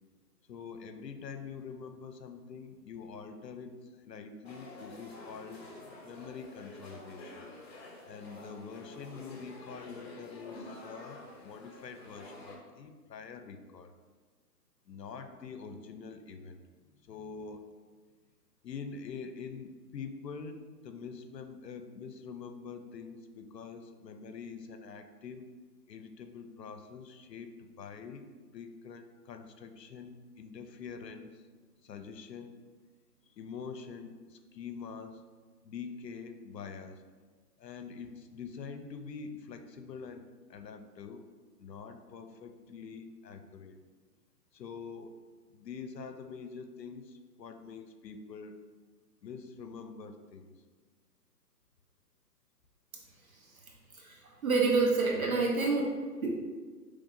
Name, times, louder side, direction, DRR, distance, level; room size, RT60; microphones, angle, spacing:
voice 1, 0.5-5.7 6.0-7.5 8.1-13.9 14.9-16.6 17.0-17.6 18.6-25.5 25.9-28.2 28.5-31.4 31.8-32.6 33.4-35.3 35.6-37.0 37.6-41.3 41.6-43.8 44.5-45.2 45.5-48.6 49.2-50.5, left 5 dB, 80° left, 8 dB, 0.7 m, -45 dB
sound 1, 4.4-12.6, left 2 dB, 40° left, 0.9 m, -49 dB
voice 2, 53.9-55.9 56.2-56.3, right 4 dB, 55° right, -2 dB, 1.0 m, -27 dB
5.1 x 3.3 x 2.6 m, 1.4 s
hypercardioid pair, 150°, 49 cm